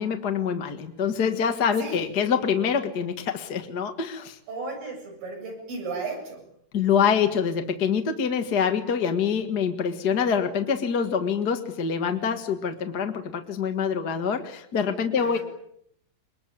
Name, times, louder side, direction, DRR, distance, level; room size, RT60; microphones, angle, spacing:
voice 1, 0.0-4.4 6.7-15.4, left 7 dB, 40° left, 6 dB, 1.7 m, -25 dB
voice 2, 4.5-6.4 15.1-15.4, right 3 dB, 90° right, 2 dB, 9.6 m, -34 dB
23.5 x 21.0 x 8.9 m, 0.72 s
omnidirectional pair, 3.9 m